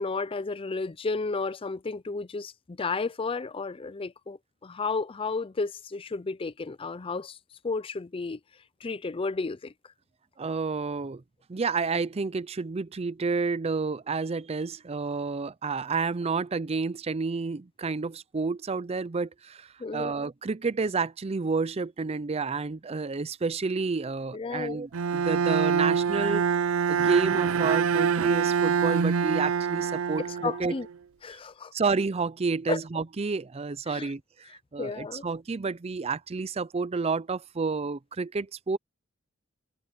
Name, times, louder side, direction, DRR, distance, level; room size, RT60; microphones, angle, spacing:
voice 1, 0.0-7.4 7.6-8.4 8.8-9.7 19.8-20.1 24.3-24.8 30.4-30.9 31.2-31.7 32.7-32.8 33.9-34.1 34.8-35.2, left 4 dB, 25° left, 0.4 m, -32 dB
voice 2, 10.4-11.2 11.5-26.4 26.9-30.8 31.7-34.2 34.7-38.8, right 4 dB, 30° right, 0.5 m, -30 dB
Bowed string instrument, 24.9-30.9, right 6 dB, 80° right, 0.6 m, -25 dB
head